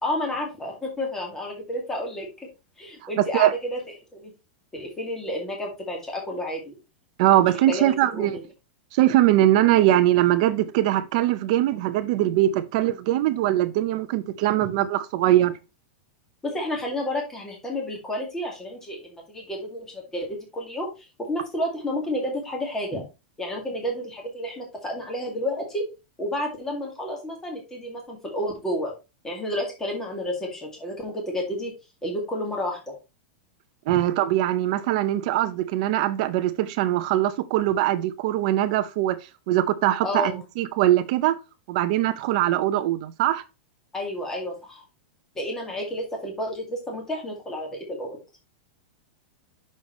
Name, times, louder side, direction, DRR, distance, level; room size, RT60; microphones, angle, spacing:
voice 1, 0.0-2.5 2.8-3.8 4.1-4.3 4.7-6.8 7.7-8.3 16.4-20.9 21.2-23.0 23.4-25.9 26.2-28.9 29.2-31.7 32.0-33.0 40.0-40.4 43.9-44.8 45.4-48.2, left 1 dB, 10° left, 2.1 m, -30 dB
voice 2, 3.2-3.5 7.2-8.4 8.9-15.5 33.9-39.2 39.5-41.4 41.7-43.4, right 13 dB, 40° right, 0.7 m, -21 dB
7.1 x 6.4 x 3.1 m
supercardioid pair, 175°, 6 cm